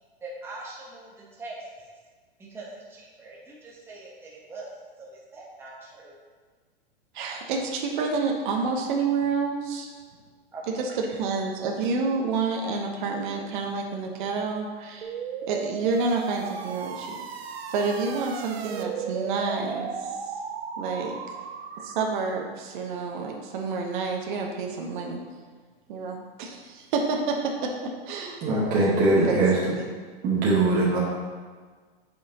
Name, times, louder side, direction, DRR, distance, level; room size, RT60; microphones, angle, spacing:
voice 1, 0.2-1.9 2.4-4.7 5.0-6.2 10.5-10.8 11.6-11.7, right 2 dB, 10° right, -4 dB, 1.0 m, -42 dB
voice 2, 7.1-9.9 10.7-15.1 15.5-17.2 17.7-20.3 20.8-21.2 21.8-25.2 25.9-28.4 29.1-29.4 29.8-29.9, right 4 dB, 55° right, 1 dB, 1.0 m, -29 dB
sound 1, 15.0-22.5, right 6 dB, 85° right, 0.7 m, -35 dB
voice 3, 28.4-29.6 30.2-31.0, right 2 dB, 30° right, -6 dB, 1.4 m, -21 dB
8.2 x 5.7 x 2.9 m, 1.5 s
hypercardioid pair, 140°, 30 cm